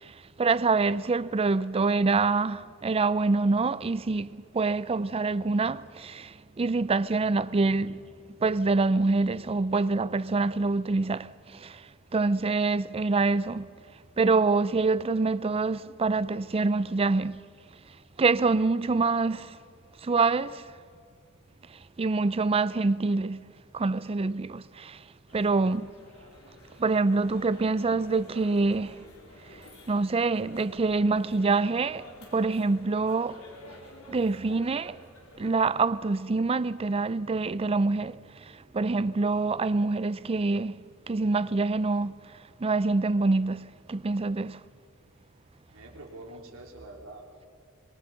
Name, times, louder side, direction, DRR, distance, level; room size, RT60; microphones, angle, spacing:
voice 1, 0.0-8.0 8.4-11.9 12.1-13.7 14.2-17.5 18.2-19.6 20.0-20.7 22.0-23.5 23.7-25.0 25.3-25.9 26.8-29.0 29.9-33.4 34.1-35.0 35.4-42.1 42.6-44.6, right 3 dB, 25° right, 0.4 m, -26 dB
sound 1, 25.3-35.9, left 1 dB, 75° left, 4.3 m, -51 dB
voice 2, 45.7-47.5, right 2 dB, 70° right, 3.4 m, -46 dB
25.5 x 22.0 x 5.8 m
head